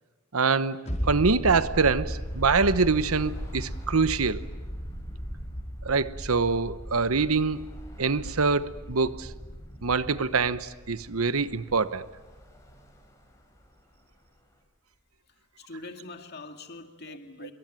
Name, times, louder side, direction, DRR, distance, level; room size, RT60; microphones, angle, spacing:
voice 1, 0.3-0.8 1.0-4.4 5.8-7.7 8.0-9.3 9.8-12.1, right 4 dB, 70° right, 1.0 m, -25 dB
sound 1, 0.9-12.2 12.5-12.6, equal, 35° left, 5.0 m, -36 dB
Bus / Traffic noise roadway noise, 2.1-14.6, equal, 15° left, 5.3 m, -48 dB
voice 2, 15.6-17.5, left 2 dB, 50° left, 2.3 m, -43 dB
26.5 x 23.0 x 9.1 m
head